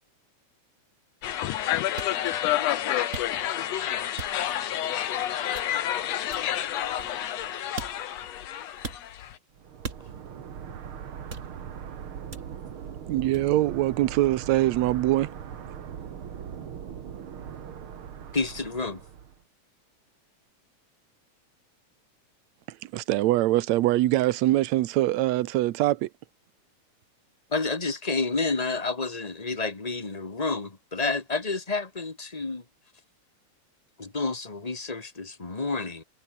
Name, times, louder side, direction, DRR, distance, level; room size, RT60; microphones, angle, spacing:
sound 1, 1.2-9.4, left 10 dB, 60° left, 2.5 m, -30 dB
voice 1, 1.4-3.5, left 16 dB, 80° left, 2.3 m, -28 dB
sound 2, 2.0-2.2 3.1-3.6 4.2-4.6 5.5-5.9 6.3-7.4 7.8-8.2 8.8-9.1 9.8-10.3 11.3-11.8 12.3-12.7 13.3-13.5, right 4 dB, 25° right, 2.3 m, -40 dB
sound 3, 9.6-19.4, right 8 dB, 50° right, 2.2 m, -40 dB
voice 2, 13.1-15.3 22.9-26.1, right 16 dB, 70° right, 2.0 m, -23 dB
voice 3, 18.3-19.0 27.5-32.6 34.0-36.0, left 3 dB, 15° left, 1.5 m, -29 dB
omnidirectional pair, 3.5 m